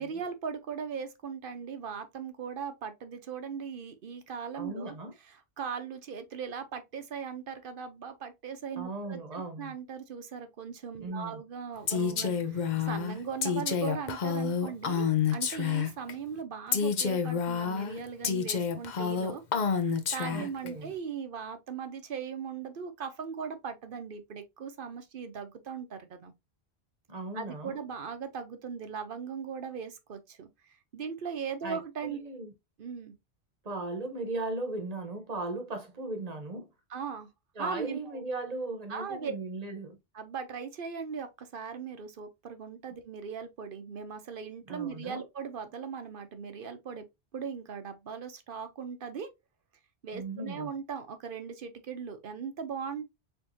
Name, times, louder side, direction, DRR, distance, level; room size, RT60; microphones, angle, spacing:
voice 1, 0.0-4.9 5.3-9.2 9.6-19.4 20.1-26.3 27.3-32.2 32.8-33.2 36.9-37.3 37.6-38.2 38.9-39.3 40.1-47.1 47.3-49.3 50.0-53.1, right 6 dB, 55° right, 0.8 m, -39 dB
voice 2, 4.5-5.1 8.8-9.7 11.0-11.4 11.9-12.3 20.3-20.9 27.1-27.8 31.6-32.5 33.6-36.7 37.6-40.0 44.6-45.2 50.1-50.7, right 2 dB, 40° right, 1.1 m, -37 dB
Female speech woman speaking, 11.9-16.1 16.7-20.7, left 6 dB, 50° left, 0.7 m, -29 dB
4.5 x 3.5 x 2.7 m
omnidirectional pair, 1.1 m